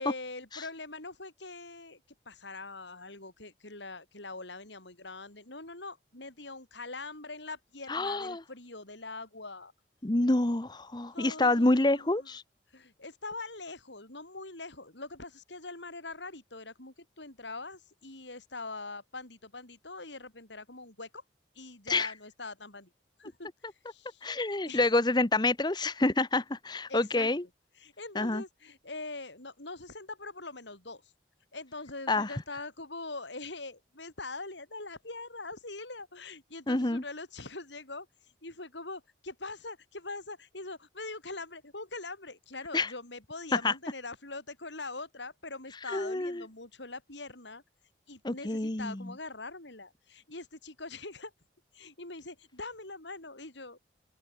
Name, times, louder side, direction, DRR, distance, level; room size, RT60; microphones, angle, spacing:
voice 1, 0.0-9.7 11.1-12.3 12.7-21.2 21.5-22.9 23.2-24.2 24.7-24.9 26.9-27.3 27.8-31.1 31.5-38.1 38.4-47.6 48.1-51.3 51.7-53.8, left 3 dB, 75° left, 6.4 m, -43 dB
voice 2, 7.9-8.4 10.0-12.4 21.9-22.1 24.2-27.4 28.1-28.4 32.1-32.3 36.7-37.0 42.7-42.9 43.5-43.7 45.9-46.4 48.2-49.1, left 2 dB, 25° left, 0.9 m, -27 dB
open air
head